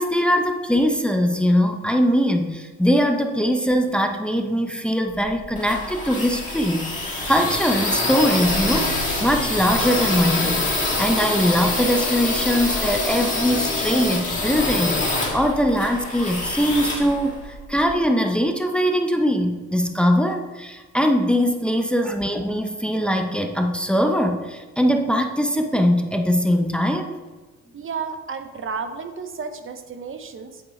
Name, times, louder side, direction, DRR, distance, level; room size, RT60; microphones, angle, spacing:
voice 1, 0.0-10.7 11.0-27.2, equal, 5° left, 4 dB, 0.7 m, -21 dB
sound 1, 5.2-17.9, left 2 dB, 25° left, 2.6 m, -25 dB
voice 2, 27.7-30.6, right 5 dB, 45° right, 8 dB, 0.9 m, -32 dB
8.5 x 8.0 x 3.2 m, 1.3 s
cardioid pair, 90°, 30 cm